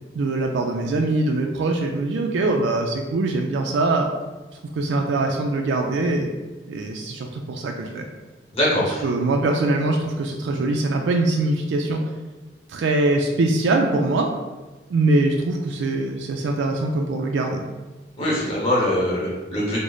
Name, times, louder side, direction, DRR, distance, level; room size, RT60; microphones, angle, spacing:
voice 1, 0.2-4.1 4.8-6.3 6.7-8.0 9.0-12.0 12.7-14.3 14.9-17.6, right 2 dB, 85° right, 2 dB, 0.3 m, -22 dB
voice 2, 8.5-9.0 18.2-19.8, left 1 dB, 35° left, -6 dB, 1.0 m, -22 dB
3.1 x 2.1 x 3.8 m, 1.2 s
head